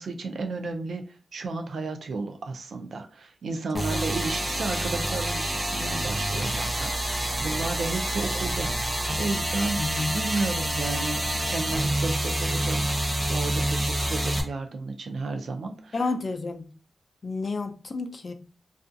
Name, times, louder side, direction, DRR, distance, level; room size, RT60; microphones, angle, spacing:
voice 1, 0.0-13.0 13.3-16.0, right 3 dB, 75° right, 0.4 m, -33 dB
sound 1, 3.7-14.4, right 1 dB, 20° right, 0.6 m, -27 dB
voice 2, 9.8-10.2 15.9-16.7 17.2-18.3, left 3 dB, 45° left, 0.4 m, -31 dB
2.4 x 2.3 x 2.5 m
wide cardioid pair, 90°, 0 cm